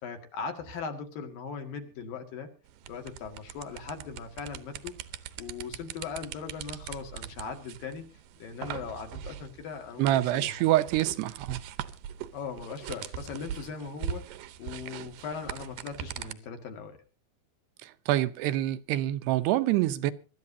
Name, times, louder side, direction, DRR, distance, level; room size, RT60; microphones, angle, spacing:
voice 1, 0.0-2.5 2.9-4.9 5.4-8.1 8.4-10.6 12.3-17.0, left 5 dB, 60° left, 3.6 m, -39 dB
sound 1, 2.7-16.3, right 10 dB, 70° right, 2.3 m, -41 dB
voice 2, 10.0-11.6 17.8-20.1, right 14 dB, 90° right, 3.0 m, -26 dB
24.0 x 13.0 x 2.7 m
omnidirectional pair, 4.6 m